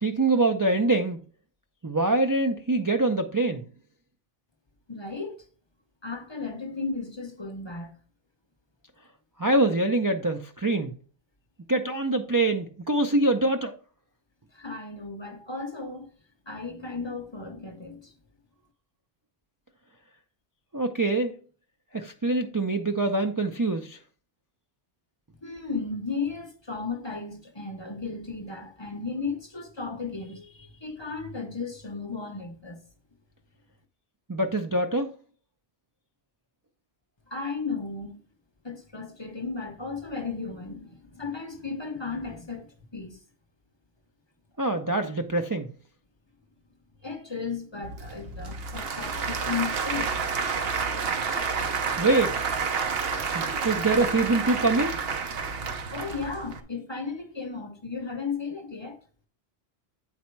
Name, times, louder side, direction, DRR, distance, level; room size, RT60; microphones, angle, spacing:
voice 1, 0.0-1.2 1.8-3.6 9.4-10.9 11.7-13.7 20.7-21.4 21.9-24.0 34.3-35.1 44.6-45.7 52.0-52.4 53.3-55.0, right 2 dB, 25° right, 0.5 m, -24 dB
voice 2, 4.9-5.4 6.0-7.9 14.5-16.1 16.5-18.1 25.4-32.9 37.3-38.2 38.6-43.2 47.0-50.1 51.1-51.3 52.7-53.7 55.9-59.0, left 4 dB, 30° left, 0.8 m, -35 dB
Applause / Crowd, 47.8-56.6, right 5 dB, 70° right, 1.1 m, -29 dB
8.8 x 4.2 x 4.5 m
omnidirectional pair, 1.1 m